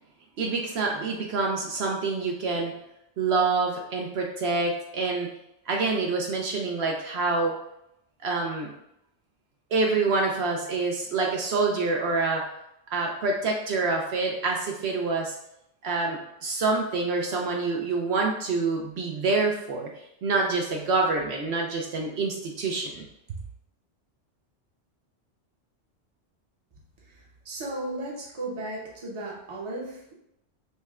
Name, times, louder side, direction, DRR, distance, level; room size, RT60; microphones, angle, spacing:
voice 1, 0.4-2.8 3.2-5.3 5.7-7.5 8.2-8.7 9.7-12.4 12.9-15.3 15.8-19.9 20.2-23.0, right 3 dB, 70° right, 0 dB, 0.8 m, -26 dB
voice 2, 27.1-30.1, right 2 dB, 30° right, -3 dB, 0.7 m, -35 dB
5.4 x 2.1 x 2.3 m, 0.81 s
omnidirectional pair, 1.2 m